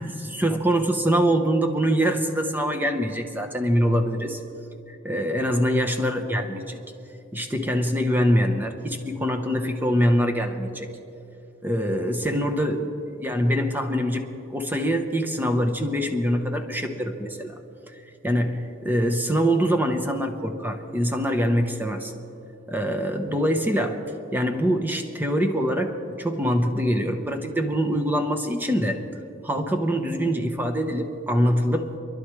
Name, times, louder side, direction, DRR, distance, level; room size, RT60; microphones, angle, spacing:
voice 1, 0.3-4.4 5.0-6.8 7.3-10.9 11.6-12.9 13.2-17.5 18.2-22.1 22.7-24.0 24.3-29.0 29.4-31.9, equal, 10° right, 4 dB, 0.9 m, -24 dB
27.5 x 11.5 x 3.2 m, 2.9 s
head